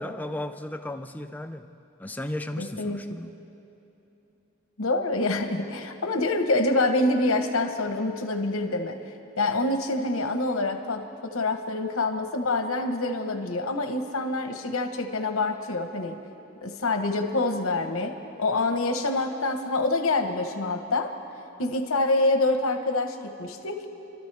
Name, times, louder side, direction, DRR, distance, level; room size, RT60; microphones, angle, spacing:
voice 1, 0.0-1.7 2.0-3.3, left 1 dB, 10° left, 7 dB, 0.4 m, -35 dB
voice 2, 2.6-3.2 4.8-9.0 9.4-16.2 16.6-21.1 21.6-23.9, left 2 dB, 85° left, 6 dB, 1.2 m, -26 dB
29.5 x 13.0 x 3.5 m, 2.9 s
head